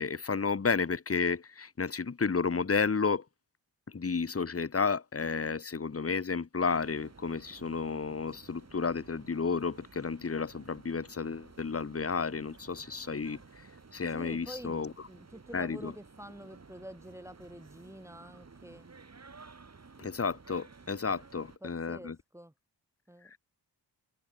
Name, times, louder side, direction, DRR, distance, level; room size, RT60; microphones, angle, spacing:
voice 1, 0.0-3.3 3.9-14.9 15.5-15.9 20.0-22.2 23.3-23.4, left 5 dB, 35° left, 1.9 m, -32 dB
sound 1, 6.6-21.6, right 4 dB, 35° right, 4.1 m, -54 dB
voice 2, 14.1-18.9 21.4-22.5 23.1-23.3, right 1 dB, 5° right, 3.4 m, -48 dB
wide cardioid pair, 100°, 43 cm